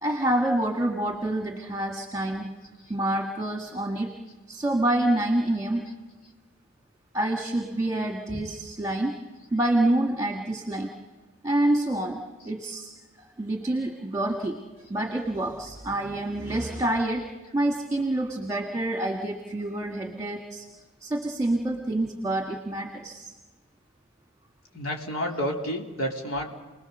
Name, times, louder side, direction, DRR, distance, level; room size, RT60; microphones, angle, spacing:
voice 1, 0.0-2.5 2.9-4.1 4.5-5.9 7.1-9.2 9.5-10.9 11.4-12.9 13.2-14.6 14.9-17.3 17.5-20.7 21.0-23.3, right 1 dB, 15° right, 1 dB, 1.7 m, -27 dB
voice 2, 24.7-26.5, equal, 85° left, 0 dB, 3.5 m, -31 dB
30.0 x 20.0 x 6.8 m, 1.3 s
head